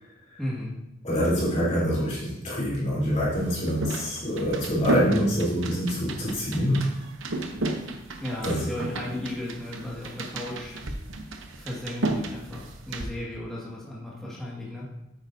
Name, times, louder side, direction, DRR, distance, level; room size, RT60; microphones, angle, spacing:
voice 1, 0.4-0.7 8.2-10.8 11.6-14.9, left 1 dB, ahead, -7 dB, 2.0 m, -35 dB
voice 2, 1.0-6.9 8.4-8.7, equal, 35° left, -8 dB, 3.5 m, -25 dB
sound 1, 3.3-13.1, right 2 dB, 65° right, 0.9 m, -33 dB
9.6 x 8.7 x 2.7 m, 0.87 s
head